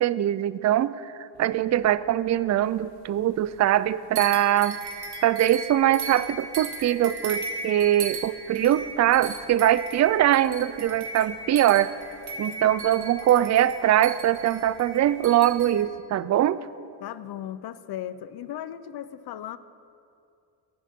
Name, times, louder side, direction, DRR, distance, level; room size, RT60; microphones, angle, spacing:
voice 1, 0.0-4.8 5.2-11.9 12.4-16.6, right 12 dB, 45° right, 16 dB, 0.4 m, -22 dB
sound 1, 1.3-2.9 3.2-3.9 4.1-15.8, right 3 dB, 70° right, 1.8 m, -37 dB
voice 2, 17.0-19.6, left 11 dB, 70° left, 14 dB, 0.7 m, -36 dB
23.0 x 10.5 x 3.7 m, 2.5 s
cardioid pair, 125°, 40 cm